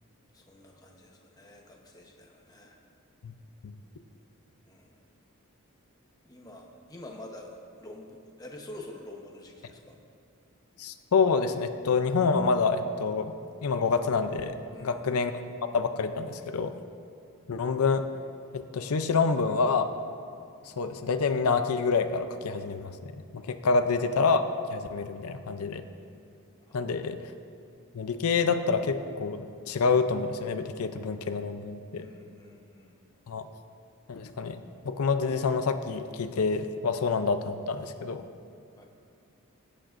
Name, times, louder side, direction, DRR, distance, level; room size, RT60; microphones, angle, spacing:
voice 1, 0.3-2.8 4.7-5.0 6.2-10.0 14.7-15.1 26.6-26.8 31.9-32.9 38.8-38.9, left 1 dB, 15° left, 0 dB, 1.0 m, -47 dB
voice 2, 10.8-13.3 13.6-14.5 14.8-15.3 15.7-16.7 17.5-18.0 18.5-19.9 20.8-22.9 23.5-24.4 24.7-25.8 26.7-27.2 27.9-32.0 33.3-33.4 34.1-34.6 34.8-38.2, left 4 dB, 80° left, 8 dB, 0.5 m, -27 dB
21.0 x 8.9 x 2.6 m, 2.4 s
head